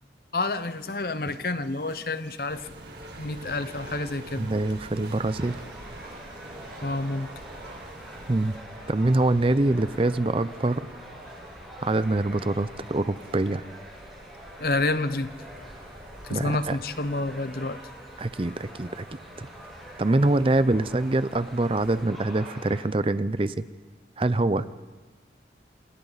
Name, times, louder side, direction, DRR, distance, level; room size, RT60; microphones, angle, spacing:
voice 1, 0.3-2.7 3.2-4.5 6.8-7.3 14.6-15.3 16.2-17.8, left 2 dB, 55° left, 12 dB, 0.8 m, -29 dB
sound 1, 0.6-8.6, right 2 dB, 90° right, 2.0 m, -51 dB
sound 2, 2.5-22.1, right 1 dB, 60° right, 2.7 m, -47 dB
voice 2, 4.4-5.6 8.3-8.5 8.9-10.9 11.8-13.6 16.3-16.8 18.2-19.0 19.4-19.5 20.0-23.6 24.2-24.7, right 2 dB, 30° right, 14 dB, 0.5 m, -24 dB
sound 3, 5.4-22.8, equal, ahead, 7.9 m, -45 dB
28.0 x 27.0 x 4.1 m, 1.3 s
head